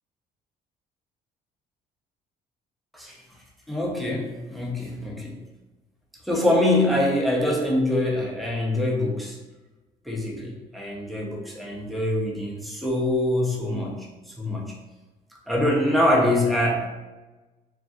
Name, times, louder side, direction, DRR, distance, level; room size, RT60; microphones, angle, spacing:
voice 1, 3.7-5.4 6.2-9.4 10.1-14.8 15.5-16.9, left 1 dB, ahead, -2 dB, 0.6 m, -24 dB
3.5 x 2.3 x 2.3 m, 1.1 s
cardioid pair, 110°, 17 cm